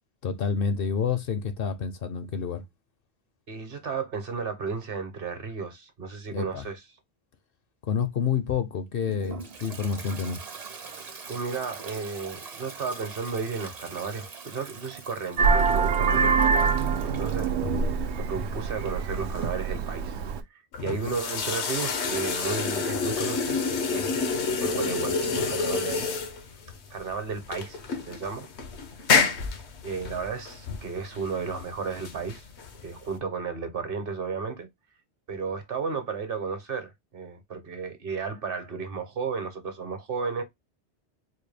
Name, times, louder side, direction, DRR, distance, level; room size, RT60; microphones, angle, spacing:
voice 1, 0.2-2.6 6.3-6.6 7.8-10.4 17.6-17.9 20.8-21.0, left 6 dB, 65° left, 0.7 m, -29 dB
voice 2, 3.5-6.8 11.3-16.8 17.0-17.5 18.2-20.1 20.8-26.1 26.9-28.5 29.8-32.5 32.8-34.7 35.3-40.4, right 5 dB, 60° right, 1.0 m, -33 dB
Toilet flush, 9.0-17.6, right 5 dB, 45° right, 0.7 m, -43 dB
Vehicle horn car horn honking, 15.4-20.4, right 5 dB, 85° right, 0.9 m, -25 dB
sound 1, 20.7-33.2, left 4 dB, 85° left, 1.1 m, -29 dB
4.2 x 2.2 x 3.2 m
omnidirectional pair, 1.1 m